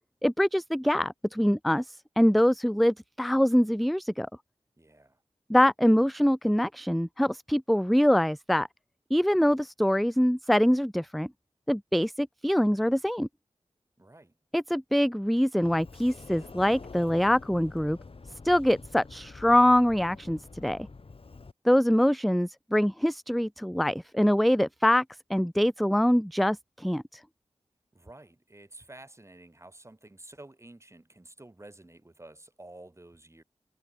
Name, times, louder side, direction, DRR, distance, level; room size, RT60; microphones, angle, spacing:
voice 1, 0.2-4.3 5.5-8.7 9.1-11.3 11.7-13.3 14.5-18.0 18.4-20.8 21.6-25.0 25.3-27.2, equal, ahead, 0.5 m, -24 dB
voice 2, 4.8-5.2 14.0-14.3 27.9-33.4, right 2 dB, 25° right, 7.1 m, -50 dB
Sliding door, 15.6-21.5, left 4 dB, 60° left, 6.4 m, -47 dB
cardioid pair, 55°, 11 cm